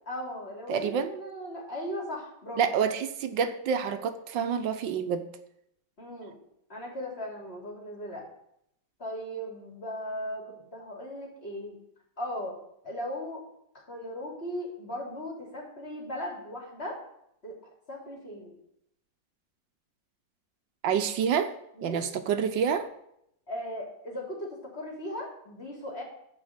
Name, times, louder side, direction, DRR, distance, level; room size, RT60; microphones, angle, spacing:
voice 1, 0.1-2.6 6.0-6.3 6.7-8.2 9.0-11.8 12.2-12.6 12.8-13.4 13.7-17.0 17.4-17.5 17.9-18.5 21.7-22.0 23.5-26.0, equal, 35° left, -2 dB, 3.4 m, -37 dB
voice 2, 0.7-1.1 2.6-5.3 20.8-21.5 21.8-22.9, right 7 dB, 85° right, 9 dB, 1.6 m, -28 dB
13.0 x 5.3 x 8.1 m, 0.76 s
omnidirectional pair, 1.9 m